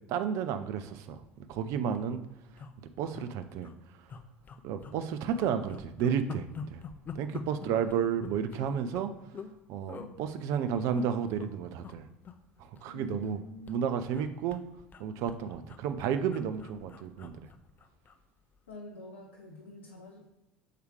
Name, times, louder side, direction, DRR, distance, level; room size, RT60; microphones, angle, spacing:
voice 1, 0.1-0.8 1.1-1.2 1.5-2.2 3.0-3.7 4.6-6.8 7.1-9.1 9.7-12.0 12.8-13.4 13.7-14.6 15.0-17.5, right 8 dB, 55° right, 10 dB, 0.5 m, -32 dB
sound 1, 1.2-1.3 1.6-1.7 1.8-2.1 2.6-3.2 3.6-3.7 4.1-5.0 5.3-9.5 9.9-10.1 10.7-11.5 11.8-12.0 12.2-13.4 13.7-18.2 18.6-18.7, left 5 dB, 30° left, 0.5 m, -45 dB
voice 2, 12.9-13.8 18.7-20.3, left 2 dB, 75° left, 0 dB, 0.6 m, -46 dB
6.6 x 4.7 x 3.2 m, 0.96 s
figure-of-eight pair, 65°, 6 cm